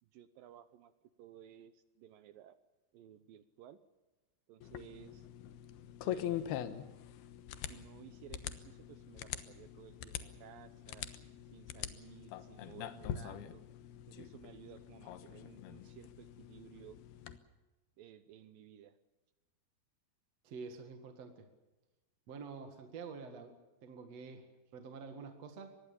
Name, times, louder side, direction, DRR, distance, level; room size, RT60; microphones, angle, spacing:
voice 1, 0.0-0.9 1.2-2.6 2.9-3.8 4.5-5.3 6.0-6.7 7.6-11.1 11.5-13.6 14.1-17.0 18.0-19.0, right 11 dB, 75° right, 13 dB, 2.1 m, -56 dB
sound 1, 4.6-17.4, left 10 dB, 70° left, 2.9 m, -44 dB
voice 2, 20.4-21.5 22.3-23.6 23.8-25.8, right 5 dB, 50° right, 6 dB, 2.3 m, -48 dB
24.5 x 20.0 x 7.1 m, 1.1 s
omnidirectional pair, 5.0 m